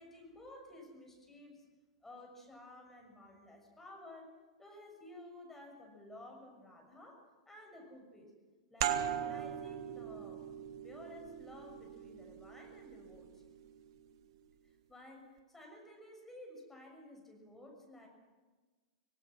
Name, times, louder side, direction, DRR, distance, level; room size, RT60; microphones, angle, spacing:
voice 1, 0.0-1.6 2.0-4.3 4.6-7.2 7.5-8.3 8.7-13.4 14.9-18.1, left 1 dB, 10° left, 1 dB, 6.6 m, -54 dB
sound 1, 8.8-14.1, right 9 dB, 60° right, 1.6 m, -40 dB
26.5 x 18.0 x 6.3 m, 1.3 s
hypercardioid pair, 105°, 3 cm